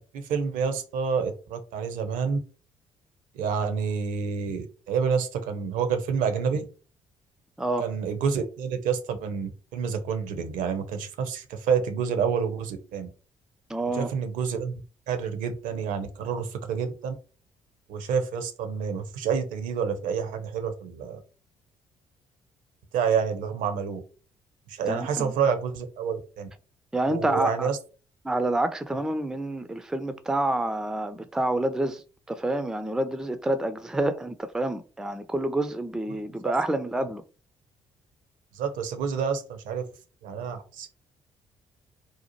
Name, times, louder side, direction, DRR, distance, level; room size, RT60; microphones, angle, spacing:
voice 1, 0.1-2.4 3.3-6.7 7.8-13.1 13.9-14.8 15.1-17.1 17.9-21.2 22.9-24.0 24.7-26.5 27.1-27.8 36.1-36.5 36.9-37.0 38.5-39.8 40.2-40.9, right 6 dB, 65° right, 0.6 m, -28 dB
voice 2, 13.7-14.1 24.9-25.3 26.9-27.7 28.2-32.0 32.3-37.2, right 1 dB, 5° right, 0.4 m, -28 dB
2.7 x 2.1 x 2.9 m
hypercardioid pair, 45°, 15 cm